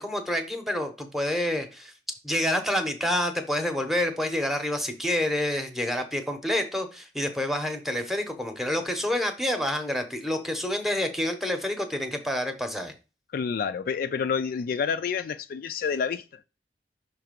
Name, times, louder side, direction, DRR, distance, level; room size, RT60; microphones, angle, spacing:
voice 1, 0.0-1.9 2.2-12.9, left 1 dB, ahead, 0.8 m, -28 dB
voice 2, 13.3-16.4, left 6 dB, 55° left, 0.3 m, -29 dB
5.8 x 3.2 x 5.2 m
head